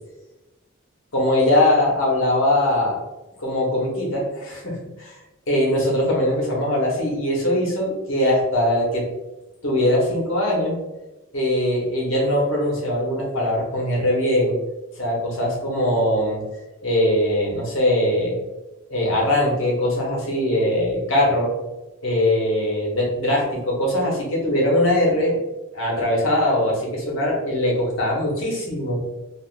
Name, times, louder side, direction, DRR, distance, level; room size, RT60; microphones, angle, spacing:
voice 1, 1.1-3.0 3.4-5.2 5.5-9.1 9.6-10.8 11.3-14.6 14.9-16.4 16.8-18.4 18.9-21.5 22.0-25.4 25.7-29.0, left 1 dB, 70° left, -3 dB, 1.0 m, -21 dB
3.4 x 2.5 x 2.4 m, 1.0 s
head